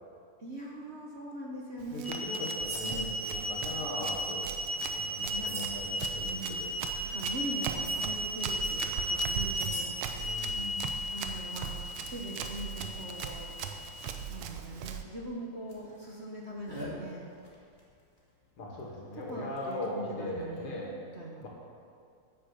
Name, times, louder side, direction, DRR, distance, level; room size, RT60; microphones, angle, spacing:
voice 1, 0.4-2.1 2.8-3.2 5.3-5.5 6.3-6.7 7.0-10.0 11.1-13.5 14.3-17.3 19.1-20.8 21.1-21.5, right 1 dB, 40° right, -2 dB, 1.1 m, -41 dB
Run, 1.8-15.0, right 8 dB, 75° right, 1.6 m, -40 dB
voice 2, 1.9-4.5 4.9-6.7 10.2-10.8 18.6-20.9 21.4-21.5, left 2 dB, 85° left, -3 dB, 3.2 m, -39 dB
sound 1, 2.0-14.0 14.8-14.9 15.7-15.8 16.7-16.9 19.6-19.7, right 1 dB, 25° left, 2.2 m, -35 dB
9.5 x 8.6 x 6.9 m, 2.3 s
omnidirectional pair, 2.4 m